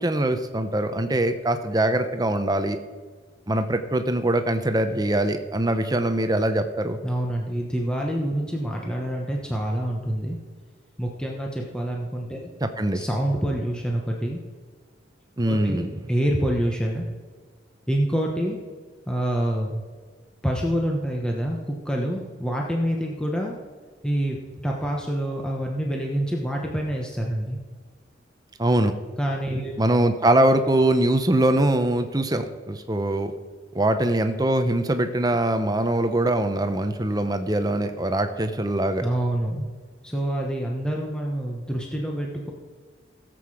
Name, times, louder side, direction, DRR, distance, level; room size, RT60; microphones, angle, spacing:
voice 1, 0.0-2.8 3.5-7.0 12.8-13.0 15.4-15.8 28.6-28.9 29.8-33.3 33.7-39.0, right 1 dB, 20° right, 8 dB, 0.8 m, -22 dB
voice 2, 7.0-10.4 11.0-12.5 12.9-14.4 15.4-17.0 17.9-18.6 19.1-19.7 20.4-23.6 24.0-27.6 29.2-29.7 39.0-39.6 40.0-42.5, right 1 dB, 5° left, -1 dB, 1.1 m, -26 dB
17.0 x 7.8 x 4.9 m, 1.5 s
head